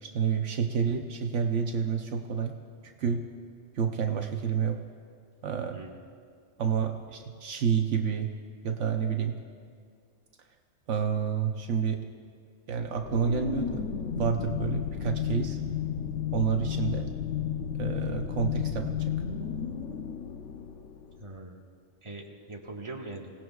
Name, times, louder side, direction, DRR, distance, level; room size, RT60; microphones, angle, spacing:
voice 1, 0.0-2.5 2.8-3.3 3.7-4.8 5.4-5.8 6.6-8.3 8.6-9.4 10.9-12.0 12.7-13.8 14.1-15.6 16.3-17.1 17.8-19.1, right 7 dB, 75° right, 4 dB, 1.1 m, -29 dB
sound 1, 13.0-21.2, left 9 dB, 85° left, 1.1 m, -33 dB
voice 2, 21.2-21.6 22.0-23.3, right 2 dB, 25° right, -1 dB, 1.5 m, -41 dB
27.0 x 17.5 x 2.3 m, 2.1 s
omnidirectional pair, 1.3 m